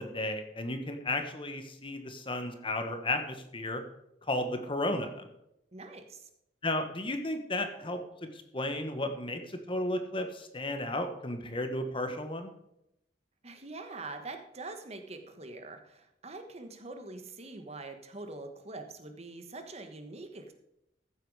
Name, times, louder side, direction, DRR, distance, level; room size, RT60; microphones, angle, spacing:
voice 1, 0.0-3.8 4.3-5.3 6.6-8.0 8.3-12.5, left 1 dB, 30° left, 7 dB, 1.3 m, -33 dB
voice 2, 5.7-6.3 13.4-20.5, right 2 dB, 35° right, 6 dB, 1.3 m, -44 dB
14.5 x 8.0 x 4.9 m, 0.81 s
head